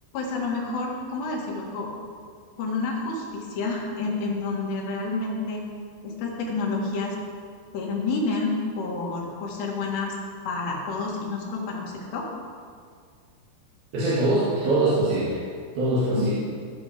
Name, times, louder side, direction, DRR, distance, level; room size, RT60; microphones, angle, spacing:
voice 1, 0.1-1.9 2.6-5.6 6.0-7.2 7.7-10.2 10.5-12.3, left 3 dB, 75° left, -2 dB, 4.0 m, -29 dB
voice 2, 13.9-15.4 15.7-16.3, right 2 dB, 65° right, -9 dB, 3.8 m, -23 dB
16.5 x 7.1 x 5.1 m, 2.1 s
omnidirectional pair, 4.9 m